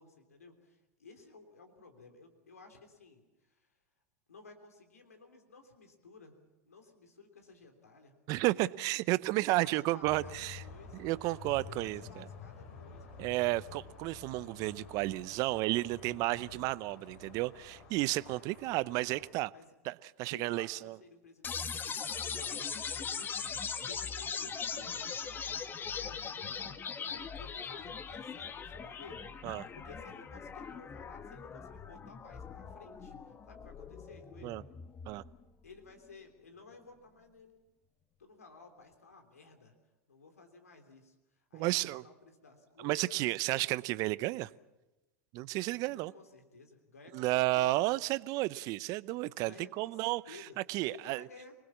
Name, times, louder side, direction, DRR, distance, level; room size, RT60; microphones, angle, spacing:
voice 1, 0.0-3.2 3.5-3.7 4.3-6.3 6.6-8.7 9.5-11.0 11.7-13.3 15.5-15.6 16.3-16.7 19.5-19.7 20.3-34.6 35.6-37.5 38.2-39.7 40.1-43.6 44.2-44.3 45.9-47.8 49.2-50.6 50.9-51.5, left 4 dB, 90° left, 3.3 m, -55 dB
voice 2, 8.3-10.6 10.9-12.3 13.2-19.5 19.8-21.0 29.4-29.7 34.4-34.6 35.1-35.2 41.5-42.0 42.8-44.5 45.3-46.1 47.1-51.3, right 19 dB, 50° right, 0.7 m, -32 dB
sound 1, 10.0-19.3, left 5 dB, 65° left, 7.7 m, -51 dB
sound 2, 21.4-35.4, left 6 dB, 25° left, 1.5 m, -40 dB
26.0 x 20.0 x 7.3 m
hypercardioid pair, 95°, 8 cm